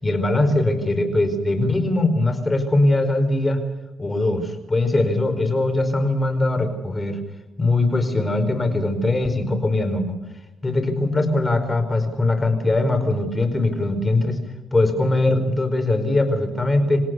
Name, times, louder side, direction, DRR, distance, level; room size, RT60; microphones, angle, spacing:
voice 1, 0.0-3.6 4.0-7.2 7.6-10.2 10.6-14.4 14.7-17.0, left 2 dB, 20° left, 8 dB, 5.0 m, -21 dB
27.0 x 17.5 x 7.0 m, 1.0 s
cardioid pair, 90°, 0 cm